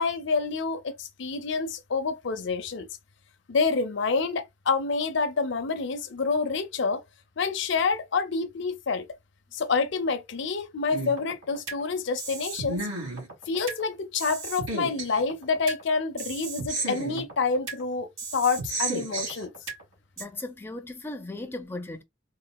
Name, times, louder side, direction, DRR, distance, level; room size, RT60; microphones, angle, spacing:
voice 1, 0.0-2.9 3.5-7.0 7.4-9.0 9.5-12.8 13.5-18.1 18.3-19.5, left 4 dB, 65° left, 0.6 m, -27 dB
sound 1, 10.9-11.8 12.2-13.8 14.2-15.8 16.2-17.8 18.2-19.8 20.2-20.3, right 3 dB, 75° right, 2.3 m, -33 dB
voice 2, 20.2-22.0, left 2 dB, 10° left, 0.5 m, -37 dB
3.9 x 2.4 x 2.3 m
head